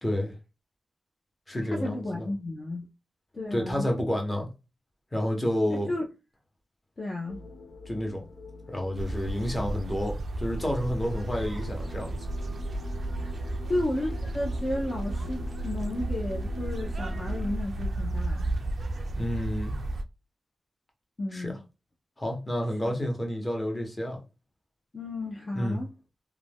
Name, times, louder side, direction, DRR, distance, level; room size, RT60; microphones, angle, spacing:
voice 1, 0.0-0.3 1.5-2.3 3.5-4.5 5.1-5.9 7.9-8.2 8.7-12.2 19.2-19.8 21.3-21.5 22.2-24.2 25.5-25.8, equal, 20° left, 0.9 m, -30 dB
voice 2, 1.7-2.9 3.3-3.9 5.7-6.1 7.0-7.4 13.4-18.5 21.2-21.6 22.8-22.9 24.9-25.9, left 1 dB, 40° left, 0.6 m, -33 dB
sound 1, 7.3-17.6, right 1 dB, 85° left, 0.4 m, -42 dB
sound 2, 8.9-20.0, right 1 dB, 55° right, 0.3 m, -33 dB
2.4 x 2.2 x 3.4 m
wide cardioid pair, 100°, 0 cm